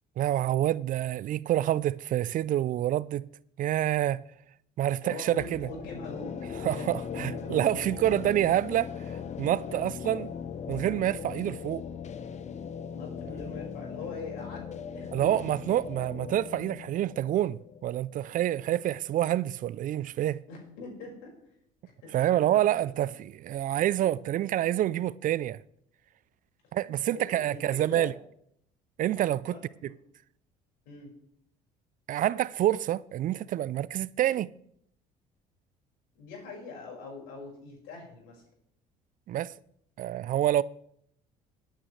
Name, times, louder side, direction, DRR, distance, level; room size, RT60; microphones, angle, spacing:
voice 1, 0.2-3.3 3.6-4.2 4.8-5.7 6.6-10.3 10.7-11.8 15.1-20.4 22.1-25.6 26.7-28.1 29.0-29.6 32.1-34.5 39.3-39.5 40.0-40.6, right 12 dB, 50° right, 0.4 m, -27 dB
voice 2, 5.0-7.7 9.7-9.9 12.9-15.3 20.5-21.4 22.0-22.6 22.9-23.0 26.6-26.7 27.1-28.1 29.5-29.6 30.9-31.1 36.2-38.4, left 4 dB, 75° left, 5.3 m, -43 dB
sound 1, 5.4-19.1, left 7 dB, 40° left, 0.9 m, -39 dB
19.5 x 9.0 x 3.2 m
supercardioid pair, 70°, 17 cm